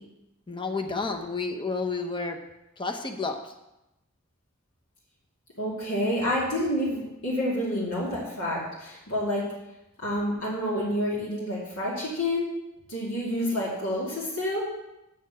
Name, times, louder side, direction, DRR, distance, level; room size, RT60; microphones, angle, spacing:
voice 1, 0.5-2.4 2.8-3.4, left 4 dB, 25° left, 4 dB, 0.8 m, -30 dB
voice 2, 5.6-9.4 10.0-12.5 12.9-14.6, left 1 dB, 80° left, -6 dB, 2.6 m, -28 dB
9.4 x 4.3 x 7.5 m, 0.92 s
head